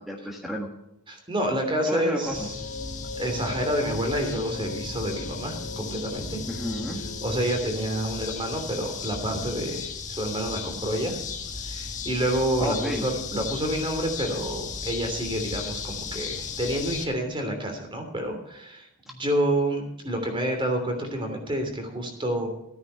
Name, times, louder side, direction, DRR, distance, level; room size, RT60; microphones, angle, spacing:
voice 1, 0.1-0.7 1.9-2.5 6.5-7.0 12.6-13.1, equal, ahead, 1 dB, 1.4 m, -30 dB
voice 2, 1.1-2.5 3.2-6.4 7.2-11.2 11.6-18.9 19.2-22.5, right 1 dB, 20° right, 4 dB, 3.0 m, -28 dB
sound 1, 2.2-7.4, left 3 dB, 60° left, 2.6 m, -38 dB
sound 2, 2.3-17.0, left 5 dB, 35° left, 1.6 m, -36 dB
15.0 x 9.6 x 5.7 m, 0.85 s
head